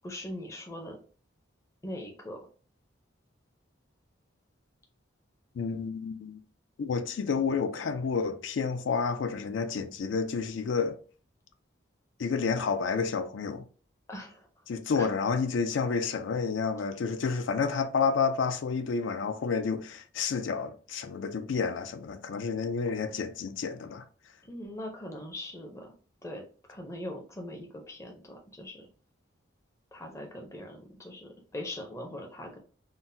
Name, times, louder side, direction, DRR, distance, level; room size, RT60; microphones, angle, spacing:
voice 1, 0.0-1.0 1.8-2.4 14.1-14.4 15.0-15.1 24.4-25.9 26.2-26.4 26.7-28.9 29.9-32.6, left 1 dB, 15° left, 0.5 m, -41 dB
voice 2, 5.6-6.4 6.8-11.0 12.2-13.6 14.7-24.1, left 5 dB, 70° left, 0.4 m, -30 dB
3.8 x 2.0 x 2.6 m
head